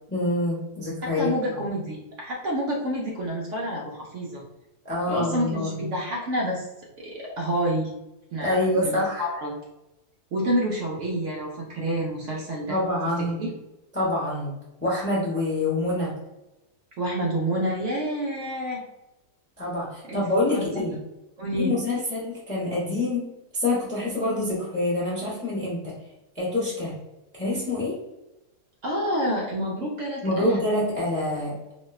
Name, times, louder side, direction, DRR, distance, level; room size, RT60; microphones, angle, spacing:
voice 1, 0.1-1.6 4.8-5.9 8.4-9.3 12.7-13.4 13.9-14.5 14.8-16.1 19.6-21.0 21.6-23.3 23.5-26.0 26.3-27.0 27.3-28.0 30.2-31.6, left 2 dB, 15° left, -7 dB, 0.5 m, -26 dB
voice 2, 1.0-4.4 5.1-6.7 7.0-7.9 8.3-9.5 10.3-12.8 13.2-13.5 17.0-18.8 20.1-20.2 20.5-20.9 21.4-21.7 28.8-30.6, equal, 60° right, -3 dB, 0.8 m, -28 dB
4.1 x 2.2 x 2.3 m, 0.96 s
omnidirectional pair, 1.7 m